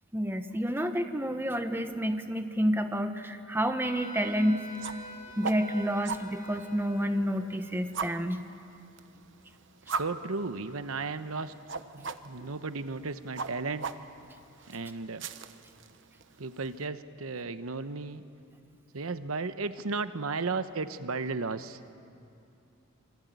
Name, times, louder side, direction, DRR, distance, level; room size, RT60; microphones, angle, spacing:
voice 1, 0.1-4.6 5.4-8.4 12.4-12.5, equal, 10° right, 7 dB, 1.1 m, -29 dB
Wind instrument woodwind instrument, 3.8-7.2, equal, 35° left, 3.1 m, -46 dB
sound 1, 4.6-16.9, right 5 dB, 60° right, 1.0 m, -41 dB
voice 2, 9.9-11.5 11.9-13.9 14.7-15.3 16.4-18.2 18.9-21.8, right 4 dB, 85° right, 11 dB, 1.0 m, -34 dB
26.0 x 23.5 x 9.4 m, 2.6 s
head